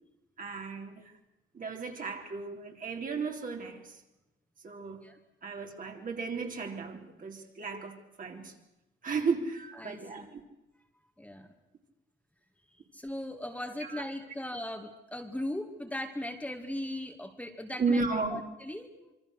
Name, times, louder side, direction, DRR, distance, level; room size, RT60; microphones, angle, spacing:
voice 1, 0.4-1.1 1.5-4.0 4.6-5.0 5.4-8.5 9.0-10.4 13.8-14.0 17.8-18.4, right 4 dB, 45° right, 2 dB, 3.9 m, -34 dB
voice 2, 9.8-10.3 11.2-11.5 12.7-18.0 18.3-18.9, left 1 dB, 5° left, 3 dB, 2.4 m, -38 dB
26.5 x 23.5 x 6.6 m, 0.98 s
cardioid pair, 90°, 20 cm